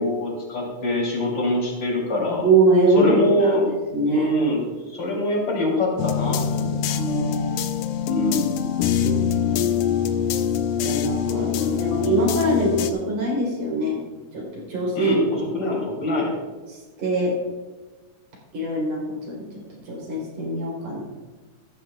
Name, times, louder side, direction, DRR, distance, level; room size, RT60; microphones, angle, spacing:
voice 1, 0.0-2.5 3.0-3.8 4.1-6.9 8.1-8.5 15.0-16.3, left 1 dB, 35° left, -2 dB, 3.7 m, -24 dB
voice 2, 2.4-3.2 3.4-3.6 3.9-4.4 6.9-7.7 9.0-9.7 10.8-14.0 14.3-15.1 17.0-17.3 18.5-19.0 19.3-19.4 19.9-21.0, right 2 dB, 65° right, -3 dB, 5.1 m, -23 dB
sound 1, 6.0-12.9, left 9 dB, 85° left, 2.2 m, -24 dB
15.0 x 13.5 x 2.4 m, 1.2 s
omnidirectional pair, 3.5 m